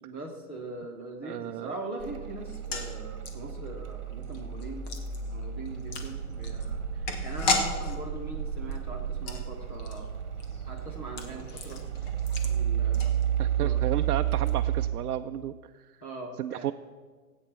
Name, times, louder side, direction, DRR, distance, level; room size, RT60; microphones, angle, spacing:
voice 1, 0.0-4.8 5.2-10.1 10.7-11.8 12.4-13.8 16.0-16.7, right 2 dB, 10° left, -1 dB, 0.4 m, -41 dB
voice 2, 1.2-1.8 13.4-16.0 16.4-16.7, right 12 dB, 85° right, 7 dB, 0.6 m, -33 dB
sound 1, 2.0-14.9, right 9 dB, 50° right, 1.8 m, -32 dB
sound 2, 2.4-13.7 13.9-14.0 14.3-14.5, left 4 dB, 30° left, 1.1 m, -37 dB
18.0 x 8.7 x 4.5 m, 1.5 s
hypercardioid pair, 160°, 45 cm